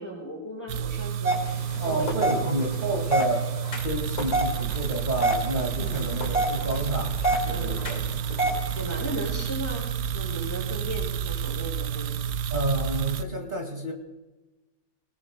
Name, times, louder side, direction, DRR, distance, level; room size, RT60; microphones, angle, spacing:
voice 1, 0.0-2.7 5.8-6.0 7.5-7.8 8.7-12.2, right 1 dB, 10° left, -4 dB, 5.6 m, -37 dB
sound 1, 0.7-13.2, right 8 dB, 75° right, 1.2 m, -30 dB
sound 2, 1.2-9.5, right 1 dB, 60° left, 2.9 m, -30 dB
voice 2, 1.8-3.5 3.8-7.2 7.5-8.0 12.5-13.9, right 1 dB, 25° right, 1 dB, 2.2 m, -30 dB
22.5 x 20.5 x 2.2 m, 1.1 s
omnidirectional pair, 1.9 m